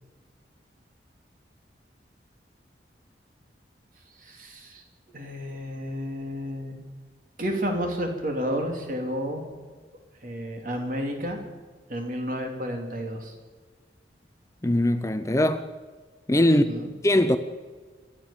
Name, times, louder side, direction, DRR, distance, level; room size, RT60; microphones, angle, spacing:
voice 1, 4.2-4.8 5.1-6.8 7.4-9.4 10.2-11.4 11.9-13.3 16.5-16.9, equal, 50° right, 3.4 m, -31 dB
voice 2, 14.6-15.7 16.3-16.6 17.0-17.4, left 1 dB, 15° left, 0.6 m, -21 dB
27.5 x 13.0 x 7.4 m
head